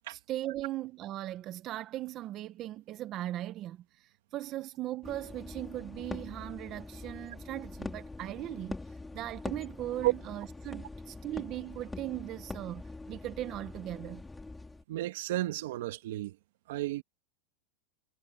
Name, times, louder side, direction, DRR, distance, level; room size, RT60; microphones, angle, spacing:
voice 1, 0.1-8.8 9.1-12.8 13.1-14.2, right 14 dB, 40° right, 1.3 m, -38 dB
sound 1, 5.0-14.8, left 2 dB, 10° left, 4.5 m, -44 dB
voice 2, 14.9-16.4 16.7-17.0, right 17 dB, 75° right, 1.7 m, -32 dB
supercardioid pair, 125°, 0 cm